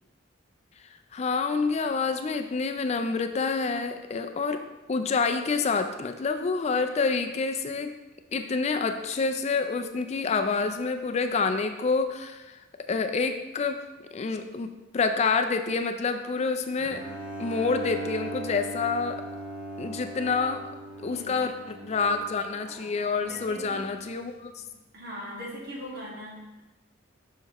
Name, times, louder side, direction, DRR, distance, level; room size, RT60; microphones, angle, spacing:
voice 1, 1.1-4.6 4.9-7.9 8.3-12.6 12.9-13.8 14.1-17.0 17.4-19.2 19.8-20.6 21.0-24.5, left 4 dB, 35° left, 7 dB, 0.4 m, -27 dB
Bowed string instrument, 16.8-23.8, right 1 dB, 30° right, 2.1 m, -39 dB
voice 2, 21.1-21.9 23.3-23.9 24.6-26.6, equal, 55° right, -4 dB, 1.9 m, -41 dB
7.2 x 5.8 x 3.0 m, 1.0 s
head